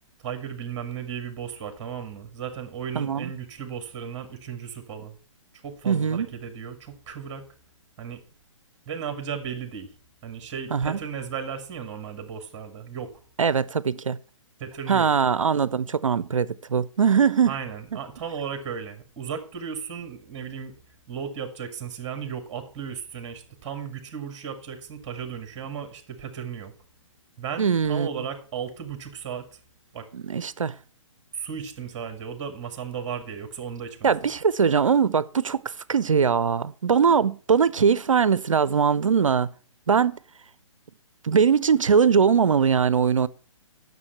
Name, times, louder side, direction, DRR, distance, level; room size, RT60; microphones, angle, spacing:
voice 1, 0.2-5.2 5.6-7.4 8.0-8.2 8.9-9.9 10.2-13.1 14.6-15.1 17.5-20.8 21.1-26.7 27.4-29.6 29.9-30.1 31.3-34.2, right 7 dB, 25° right, 1.9 m, -35 dB
voice 2, 2.9-3.3 5.9-6.3 10.7-11.0 13.4-14.2 14.9-17.6 27.6-28.1 30.1-30.7 34.0-35.6 35.9-39.5 39.9-40.2 41.2-43.3, right 6 dB, 75° right, 0.6 m, -21 dB
9.7 x 6.7 x 5.6 m
figure-of-eight pair, 130°, 17 cm